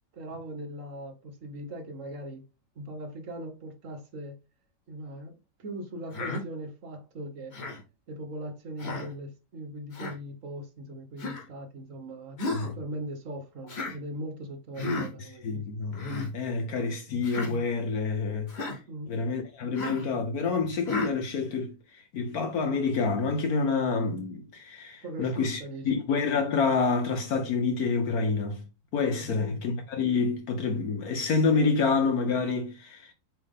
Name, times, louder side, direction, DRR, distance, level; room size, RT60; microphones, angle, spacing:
voice 1, 0.1-2.4 2.7-4.4 4.9-7.6 8.1-12.4 12.7-15.6 18.9-19.1 25.0-25.8 29.1-29.4, right 1 dB, 55° right, 1.4 m, -40 dB
Human voice, 6.1-6.4 7.5-7.8 8.8-9.1 9.9-10.1 11.2-11.4 12.4-12.7 13.7-14.0 14.8-15.1 15.9-16.3 17.2-17.5 18.5-18.8 19.7-20.1 20.9-21.1, left 2 dB, 45° left, 1.6 m, -33 dB
voice 2, 12.4-12.7 15.4-18.5 19.1-28.6 28.9-33.1, left 4 dB, 70° left, 1.3 m, -28 dB
7.4 x 3.6 x 3.6 m
omnidirectional pair, 1.7 m